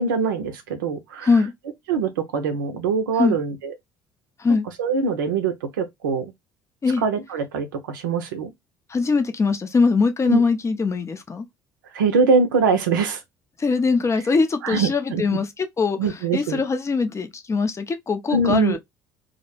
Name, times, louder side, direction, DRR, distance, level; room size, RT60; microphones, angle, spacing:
voice 1, 0.0-1.3 1.9-3.7 4.8-6.3 7.0-8.5 10.3-10.4 11.9-13.2 14.6-15.4 16.0-16.6 18.3-18.8, right 5 dB, 85° right, 0.5 m, -23 dB
voice 2, 8.9-11.5 13.6-15.5 15.8-16.0 16.3-18.8, left 4 dB, 30° left, 0.5 m, -21 dB
2.1 x 2.0 x 3.0 m
hypercardioid pair, 60°, 10 cm